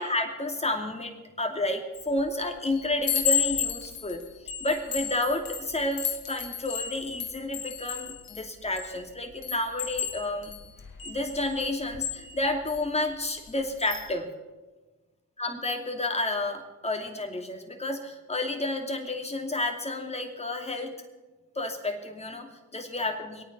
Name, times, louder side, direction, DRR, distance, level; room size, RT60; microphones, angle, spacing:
voice 1, 0.0-4.2 4.6-10.5 11.0-14.3 15.4-20.9 21.5-23.4, left 2 dB, 15° left, 3 dB, 2.7 m, -31 dB
Chime, 2.0-2.3 2.7-9.0 9.4-12.8 13.3-13.5 13.8-14.1, left 8 dB, 50° left, 2.3 m, -33 dB
22.0 x 9.0 x 6.9 m, 1.2 s
hypercardioid pair, 45°, 43 cm